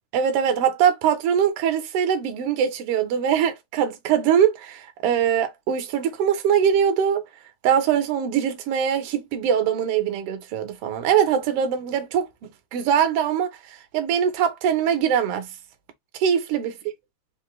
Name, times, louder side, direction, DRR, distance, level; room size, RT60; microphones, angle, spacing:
voice 1, 0.1-7.2 7.6-13.5 13.9-15.5 16.1-16.8, right 8 dB, 65° right, 1.6 m, -22 dB
4.5 x 2.8 x 3.1 m
omnidirectional pair, 3.3 m